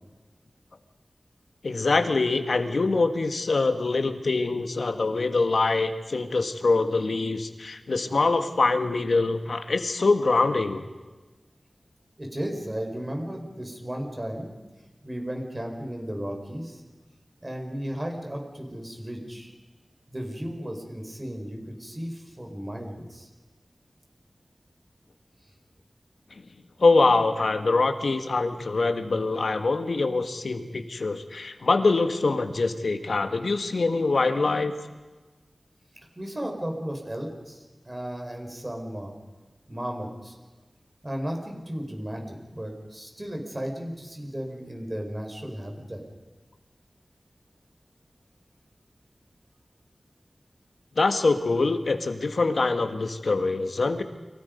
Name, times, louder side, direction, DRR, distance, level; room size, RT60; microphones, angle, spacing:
voice 1, 1.6-10.8 26.4-26.5 26.8-34.7 51.0-54.0, left 3 dB, 80° left, 7 dB, 1.7 m, -24 dB
voice 2, 12.2-14.5 15.0-16.8 17.4-19.5 20.1-23.3 36.2-39.1 39.7-40.4 41.0-46.0, equal, 25° right, 2 dB, 5.0 m, -35 dB
29.5 x 23.5 x 5.4 m, 1.2 s
wide cardioid pair, 75°, 0 cm